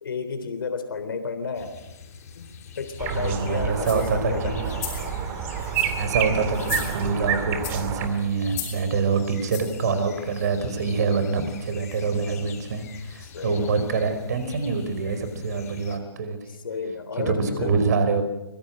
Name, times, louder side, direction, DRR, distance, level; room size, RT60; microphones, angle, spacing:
voice 1, 0.0-1.8 2.4-2.5 2.8-5.2 13.2-13.8 16.5-17.8, left 5 dB, 60° left, 8 dB, 3.6 m, -32 dB
sound 1, 1.5-16.0, left 6 dB, 35° left, 6.0 m, -44 dB
sound 2, 3.0-8.1, right 7 dB, 15° right, 2.3 m, -29 dB
voice 2, 3.1-4.7 6.0-16.4 17.3-18.2, right 4 dB, 40° right, 10 dB, 5.0 m, -25 dB
sound 3, 3.8-4.2 4.6-5.1 5.6-6.1 6.5-7.2 7.6-7.9 8.5-8.8 9.5-9.8 10.4-10.5, left 9 dB, 20° left, 5.8 m, -36 dB
25.0 x 22.5 x 7.7 m, 0.93 s
hypercardioid pair, 160°, 13 cm